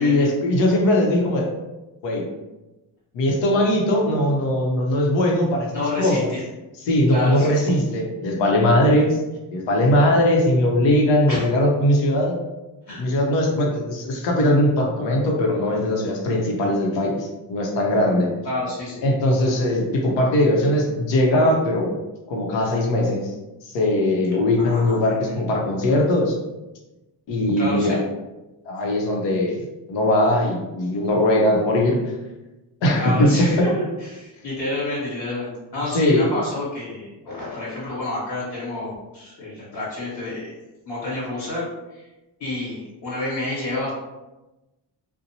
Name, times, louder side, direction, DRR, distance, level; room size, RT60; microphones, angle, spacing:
voice 1, 0.0-1.5 2.0-2.2 3.1-5.7 6.0-6.2 6.9-9.2 9.5-12.4 13.0-18.3 19.0-21.9 22.3-23.3 23.6-26.4 27.3-28.0 28.7-32.0 32.8-33.7 35.9-36.3, left 1 dB, 85° left, 0 dB, 0.8 m, -20 dB
voice 2, 5.7-6.2 7.1-7.6 11.3-11.5 12.9-13.1 18.4-19.0 24.6-25.3 27.6-28.0 33.0-40.5 40.8-42.1 42.4-43.9, left 2 dB, 55° left, -8 dB, 1.4 m, -29 dB
2.6 x 2.1 x 2.8 m, 1.0 s
cardioid pair, 100°, 43 cm